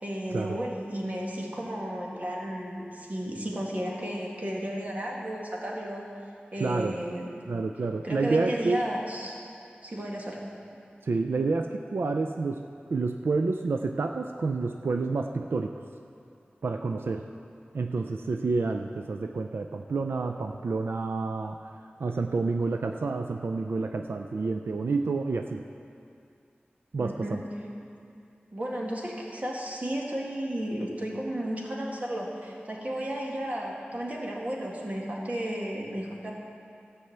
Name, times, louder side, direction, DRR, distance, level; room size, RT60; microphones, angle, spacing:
voice 1, 0.0-6.0 6.5-7.3 8.0-9.3 9.8-10.4 27.0-27.4 28.5-36.3, equal, 40° right, -3 dB, 2.0 m, -33 dB
voice 2, 6.6-7.0 7.5-8.8 11.0-12.6 12.9-15.8 16.6-17.3 17.7-21.6 22.0-25.7 26.9-27.4, right 3 dB, 90° right, 5 dB, 0.4 m, -29 dB
14.0 x 5.6 x 8.0 m, 2.5 s
wide cardioid pair, 75°, 4 cm